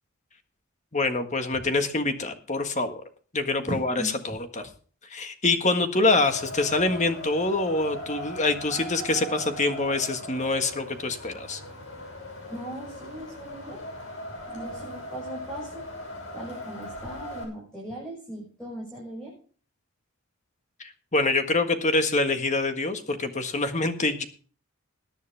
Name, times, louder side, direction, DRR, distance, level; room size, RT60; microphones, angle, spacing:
voice 1, 0.9-3.0 3.3-4.7 5.1-11.6 20.8-24.2, left 2 dB, 35° left, 7 dB, 1.6 m, -25 dB
voice 2, 3.6-4.2 12.5-13.8 14.5-15.8 16.3-19.3, right 1 dB, 5° left, -4 dB, 6.1 m, -38 dB
Wind, 6.2-17.4, left 1 dB, 65° left, 6.6 m, -39 dB
21.0 x 9.9 x 3.5 m, 0.42 s
head